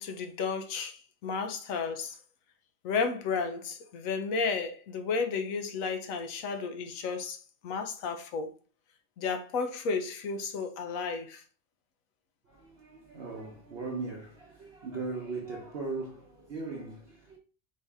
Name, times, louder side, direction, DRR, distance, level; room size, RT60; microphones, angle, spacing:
voice 1, 0.0-2.2 2.8-8.5 9.2-11.4, left 5 dB, 80° left, 1.1 m, -33 dB
voice 2, 12.4-17.4, right 3 dB, 55° right, 0.9 m, -39 dB
4.0 x 2.7 x 3.4 m
omnidirectional pair, 1.4 m